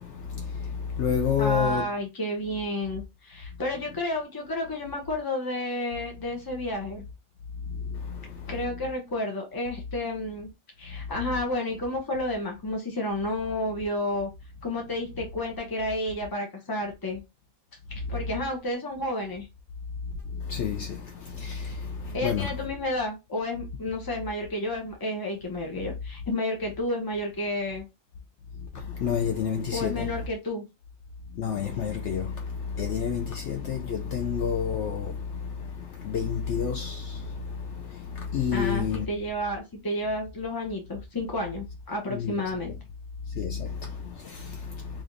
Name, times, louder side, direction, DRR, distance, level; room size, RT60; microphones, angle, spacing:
voice 1, 0.0-1.9 7.7-8.6 10.9-11.0 18.0-18.2 20.3-22.5 28.6-30.1 31.3-39.1 42.1-42.4 43.3-45.0, left 7 dB, 65° left, 0.8 m, -30 dB
voice 2, 1.4-7.0 8.5-10.5 10.8-14.3 14.6-17.2 17.9-19.5 22.1-27.9 29.7-30.7 38.5-42.8, left 1 dB, 30° left, 0.4 m, -31 dB
3.2 x 2.6 x 3.8 m
omnidirectional pair, 1.4 m